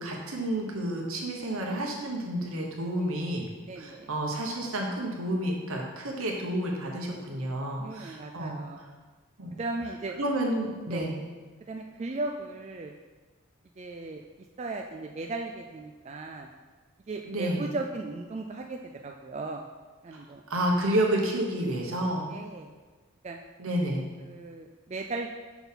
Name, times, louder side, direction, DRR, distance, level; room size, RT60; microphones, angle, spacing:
voice 1, 0.0-3.5 3.8-8.6 9.4-9.6 10.2-11.1 17.3-17.6 20.1-20.2 20.5-22.3 23.6-24.0, right 1 dB, 80° right, 0 dB, 1.2 m, -30 dB
voice 2, 3.0-3.4 3.6-4.1 7.8-8.8 9.5-10.2 10.9-11.1 11.7-12.9 13.8-14.2 14.6-16.5 17.1-19.7 20.0-20.4 22.3-22.7 23.2-23.4 24.2-25.3, right 3 dB, 30° right, 2 dB, 0.3 m, -37 dB
5.9 x 3.9 x 5.7 m, 1.3 s
head